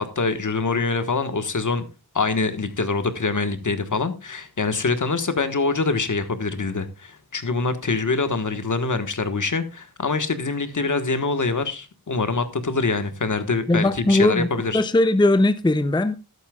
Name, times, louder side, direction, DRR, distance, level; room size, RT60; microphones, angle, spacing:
voice 1, 0.1-1.8 2.1-14.8, left 4 dB, 55° left, 1.4 m, -24 dB
voice 2, 13.7-14.5 14.7-16.2, left 2 dB, 15° left, 0.6 m, -19 dB
14.0 x 11.5 x 2.3 m
wide cardioid pair, 100°, 36 cm